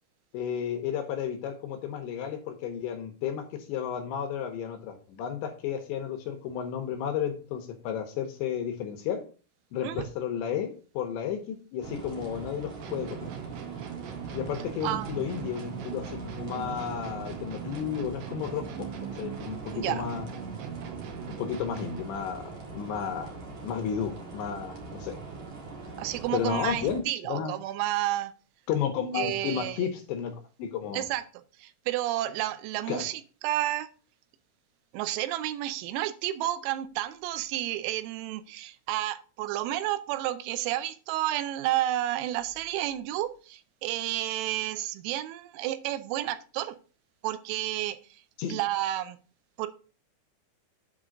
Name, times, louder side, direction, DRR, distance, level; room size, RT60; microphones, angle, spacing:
voice 1, 0.3-9.2 9.7-13.3 14.3-18.9 19.2-20.3 21.3-23.3 23.6-25.2 26.3-27.5 28.7-30.3 30.6-31.1 32.9-33.1 48.4-48.6, left 8 dB, 80° left, 2.7 m, -32 dB
sound 1, 11.8-27.0, right 4 dB, 55° right, 2.1 m, -42 dB
sound 2, 12.8-22.2, right 8 dB, 70° right, 3.0 m, -40 dB
voice 2, 14.8-15.4 19.7-20.1 26.0-28.3 29.1-29.9 30.9-31.2 31.6-33.9 34.9-46.8 47.2-48.0 48.5-49.2 49.6-49.7, right 14 dB, 90° right, 3.4 m, -31 dB
8.2 x 3.7 x 6.3 m
omnidirectional pair, 5.9 m